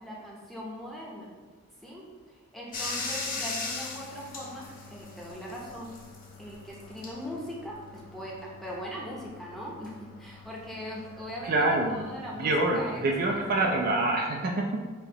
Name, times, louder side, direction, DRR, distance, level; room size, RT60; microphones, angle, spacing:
voice 1, 0.0-1.3 1.8-5.9 6.4-13.7, equal, ahead, -4 dB, 0.7 m, -40 dB
Bathtub (filling or washing), 2.7-13.9, left 3 dB, 40° left, 0.6 m, -41 dB
voice 2, 11.4-12.1 12.4-14.8, right 2 dB, 40° right, 1 dB, 0.4 m, -26 dB
4.3 x 2.8 x 4.0 m, 1.4 s
head